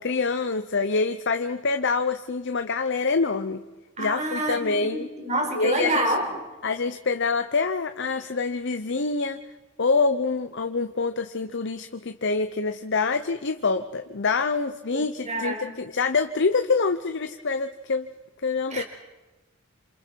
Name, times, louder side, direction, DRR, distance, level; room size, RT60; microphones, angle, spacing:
voice 1, 0.0-3.6 4.0-5.1 5.5-6.1 6.6-9.4 9.8-18.1 18.4-18.8, left 4 dB, 60° left, 8 dB, 0.9 m, -26 dB
voice 2, 4.0-6.2 14.9-15.7 18.7-18.8, right 1 dB, 35° right, 3 dB, 4.4 m, -28 dB
28.0 x 27.5 x 4.7 m, 1.2 s
head